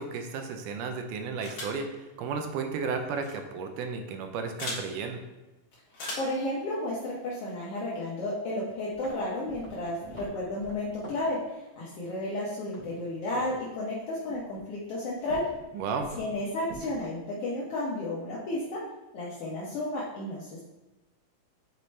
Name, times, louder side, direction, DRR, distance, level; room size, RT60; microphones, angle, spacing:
voice 1, 0.0-5.2 15.7-16.1, right 5 dB, 80° right, 5 dB, 2.0 m, -33 dB
sound 1, 1.4-1.8 3.1-3.3 4.6-4.8 5.9-6.4, left 2 dB, 45° left, 1.9 m, -37 dB
voice 2, 6.2-15.4 16.2-18.8 19.1-20.6, left 1 dB, 75° left, -6 dB, 1.3 m, -32 dB
sound 2, 8.9-9.2 9.5-11.4 12.7-13.1 13.3-13.6 14.3-14.6 15.2-15.6 16.0-16.3 16.6-17.0, right 2 dB, 20° left, 1.9 m, -46 dB
8.2 x 4.3 x 3.2 m, 1.1 s
omnidirectional pair, 4.0 m